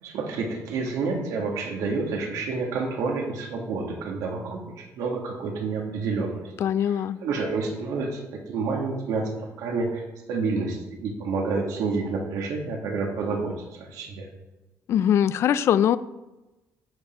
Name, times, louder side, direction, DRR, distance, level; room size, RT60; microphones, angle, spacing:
voice 1, 0.0-6.4 6.8-10.0 10.3-14.3, right 4 dB, 80° right, 1 dB, 1.9 m, -29 dB
voice 2, 6.6-7.2 14.9-16.0, left 10 dB, 50° left, 15 dB, 0.4 m, -21 dB
8.8 x 7.3 x 4.4 m, 1.1 s
cardioid pair, 170°, 6 cm